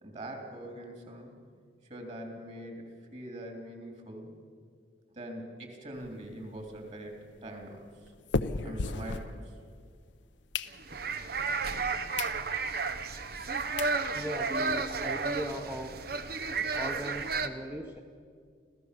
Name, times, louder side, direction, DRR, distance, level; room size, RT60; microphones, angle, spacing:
voice 1, 0.0-1.3 1.9-4.3 5.1-8.1 8.6-9.6, right 1 dB, 40° right, 3 dB, 3.4 m, -43 dB
sound 1, 5.9-9.9 10.3-11.2 11.7-11.8 12.1-12.4 12.8-12.9 13.5-13.6 13.8-14.0 14.4-14.5 14.7-14.8 15.1-15.2 15.5-16.6, left 3 dB, 80° left, 0.8 m, -37 dB
sound 2, 10.7-17.5, right 4 dB, 55° right, 0.9 m, -32 dB
voice 2, 14.1-16.1 16.8-18.0, equal, 10° right, 2 dB, 0.9 m, -38 dB
26.0 x 16.0 x 6.9 m, 2.1 s
head